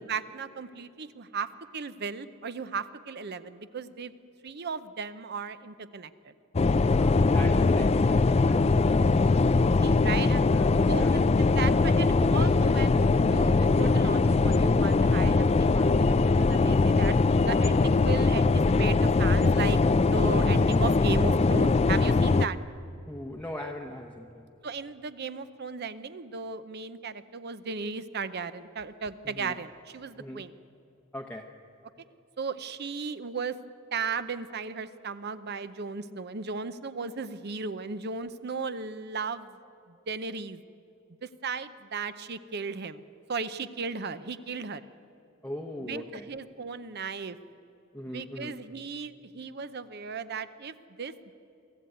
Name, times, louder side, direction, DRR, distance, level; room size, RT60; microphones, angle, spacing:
voice 1, 0.0-4.1 4.4-6.3 9.8-10.4 10.8-17.2 17.5-22.6 24.6-30.5 32.4-33.5 33.9-39.6 40.1-40.6 41.2-43.0 43.3-44.8 45.8-47.4 48.1-51.3, right 5 dB, 50° right, 13 dB, 0.7 m, -36 dB
sound 1, 6.6-22.5, left 3 dB, 30° left, 0.4 m, -22 dB
voice 2, 6.9-9.1 10.5-11.2 23.1-24.5 29.2-29.5 30.2-30.5 31.1-31.5 45.4-46.3 47.9-48.6, left 1 dB, 5° left, 2 dB, 0.8 m, -40 dB
23.0 x 14.5 x 9.4 m, 2.7 s
head